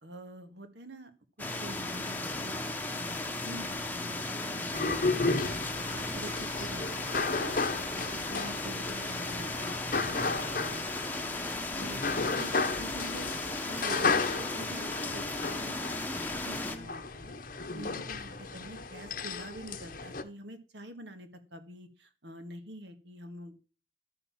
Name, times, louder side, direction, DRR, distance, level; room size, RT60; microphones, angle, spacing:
voice 1, 0.0-1.1 1.6-2.6 2.9-23.6, right 1 dB, 65° right, 7 dB, 1.9 m, -47 dB
sound 1, 1.4-16.8, left 2 dB, 10° left, 1.1 m, -36 dB
sound 2, 1.4-10.8, right 1 dB, 40° right, 1.0 m, -47 dB
sound 3, 4.7-20.2, left 3 dB, 45° left, 1.0 m, -34 dB
12.0 x 6.7 x 7.4 m, 0.35 s
head